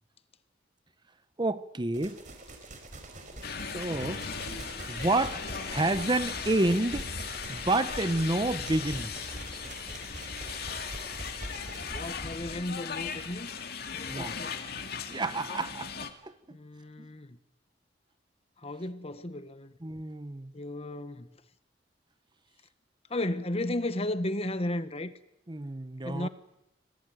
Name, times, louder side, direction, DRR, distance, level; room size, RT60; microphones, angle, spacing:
voice 1, 1.4-2.2 3.7-4.2 4.9-7.1 7.5-9.1 14.1-14.4 15.1-16.3 17.0-17.1 19.8-20.5 25.5-26.3, right 2 dB, 25° right, 0.8 m, -29 dB
sound 1, 1.9-12.1, right 2 dB, 45° right, 4.6 m, -44 dB
sound 2, 3.4-16.1, left 6 dB, 55° left, 2.4 m, -38 dB
voice 2, 11.8-13.5 13.9-14.6 16.5-17.4 18.6-19.7 20.5-21.3 23.1-25.1 26.0-26.3, left 1 dB, 30° left, 1.3 m, -34 dB
26.5 x 19.0 x 9.3 m
head